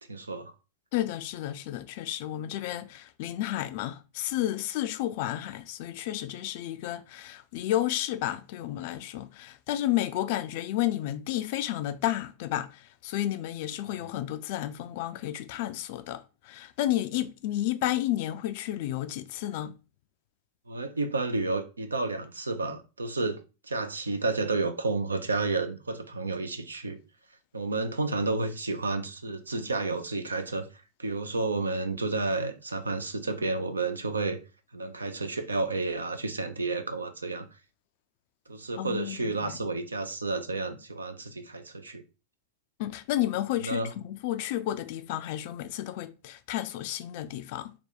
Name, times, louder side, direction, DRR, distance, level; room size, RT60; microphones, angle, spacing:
voice 1, 0.1-0.5 20.7-23.4 23.6-27.0 27.5-30.7 31.0-34.4 34.7-37.5 38.5-42.0 43.6-43.9, right 3 dB, 75° right, 0.5 m, -31 dB
voice 2, 0.9-19.8 38.8-39.6 42.8-47.7, left 13 dB, 50° left, 0.3 m, -31 dB
2.8 x 2.3 x 3.8 m
figure-of-eight pair, 90°, 0 cm